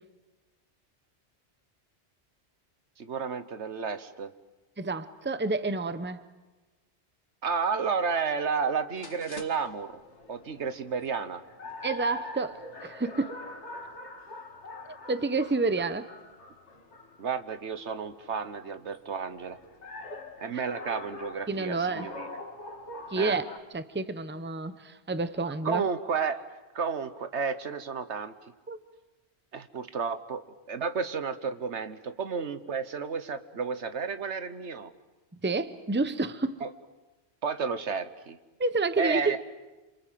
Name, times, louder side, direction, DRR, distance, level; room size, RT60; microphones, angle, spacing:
voice 1, 3.0-4.3 7.4-10.0 10.3-11.4 17.2-19.6 20.4-22.3 23.2-23.4 25.6-26.4 26.7-28.3 29.5-34.9 36.6-36.7 37.4-38.4 39.0-39.4, right 5 dB, 85° right, 11 dB, 1.5 m, -32 dB
voice 2, 4.8-6.2 11.8-13.4 14.9-16.1 21.5-22.1 23.1-23.5 23.7-25.8 28.7-28.8 35.4-36.6 38.6-39.4, right 3 dB, 10° right, 12 dB, 0.9 m, -29 dB
sound 1, 9.0-23.6, left 2 dB, 90° left, 2.3 m, -44 dB
27.5 x 27.5 x 7.6 m, 1.1 s
omnidirectional pair, 1.1 m